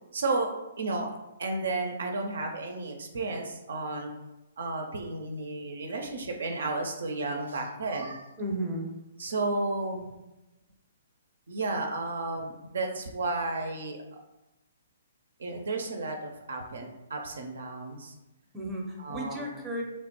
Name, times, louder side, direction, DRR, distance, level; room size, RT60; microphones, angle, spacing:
voice 1, 0.1-1.1 1.4-4.1 4.6-8.3 9.2-10.0 11.5-14.0 15.4-18.1 19.0-19.6, right 3 dB, 70° right, 3 dB, 0.4 m, -32 dB
voice 2, 8.4-8.9 18.5-19.8, right 1 dB, 15° right, 0 dB, 0.6 m, -34 dB
3.0 x 2.1 x 2.9 m, 0.96 s
figure-of-eight pair, 125°, 0 cm